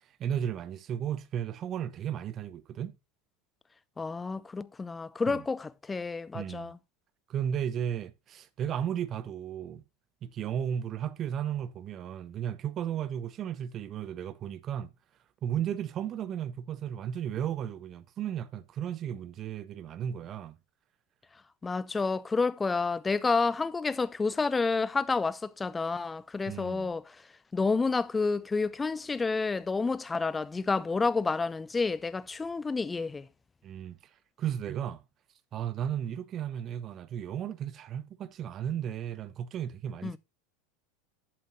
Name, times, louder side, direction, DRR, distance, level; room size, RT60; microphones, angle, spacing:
voice 1, 0.2-2.9 5.3-5.4 6.3-6.7 7.3-9.8 10.2-14.9 15.4-20.6 26.5-26.9 33.6-34.0 34.4-35.0 35.5-40.2, right 9 dB, 35° right, 0.8 m, -34 dB
voice 2, 4.0-6.8 21.6-27.2 27.5-33.3 40.0-40.2, left 4 dB, 15° left, 0.6 m, -29 dB
7.7 x 7.5 x 3.8 m
figure-of-eight pair, 80°, 0 cm